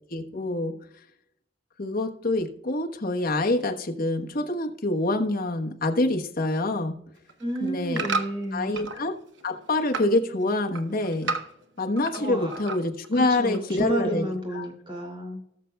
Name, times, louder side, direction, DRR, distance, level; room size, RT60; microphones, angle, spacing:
voice 1, 0.1-0.7 1.8-6.9 7.6-8.1 8.5-9.1 9.4-11.3 11.8-14.3 14.5-14.7, left 2 dB, 50° left, 3 dB, 1.2 m, -26 dB
sound 1, 7.2-9.0 9.4-10.2 10.5-12.2 12.5-13.1 13.5-13.6, right 4 dB, 70° right, 0.9 m, -32 dB
voice 2, 7.4-8.8 12.1-12.5 13.1-15.4, right 1 dB, 30° right, 2 dB, 2.7 m, -31 dB
19.0 x 6.5 x 2.3 m, 0.75 s
head